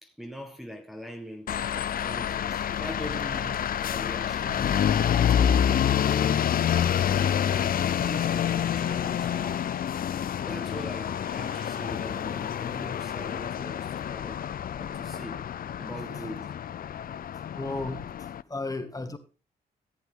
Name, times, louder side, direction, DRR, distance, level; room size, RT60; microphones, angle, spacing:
voice 1, 0.0-1.6 2.0-4.9 5.2-6.6 7.5-9.6 10.5-14.5 14.7-15.5 15.8-16.5, equal, ahead, 1.6 m, -41 dB
sound 1, 1.5-18.4, left 9 dB, 60° left, 0.6 m, -28 dB
sound 2, 3.0-11.9, right 3 dB, 70° right, 5.9 m, -54 dB
voice 2, 17.5-19.2, left 2 dB, 20° left, 2.0 m, -34 dB
14.5 x 8.2 x 3.9 m
cardioid pair, 70°, 17 cm